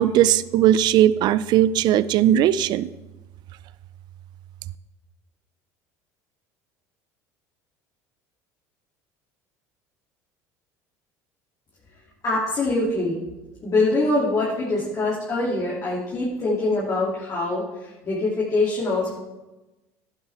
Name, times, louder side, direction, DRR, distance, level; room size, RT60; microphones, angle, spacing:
voice 1, 0.0-2.9, right 11 dB, 60° right, 17 dB, 0.5 m, -18 dB
voice 2, 12.2-13.2 13.6-19.1, left 2 dB, 40° left, -6 dB, 2.8 m, -24 dB
11.5 x 10.0 x 3.5 m, 1.1 s
supercardioid pair, 90°, 8 cm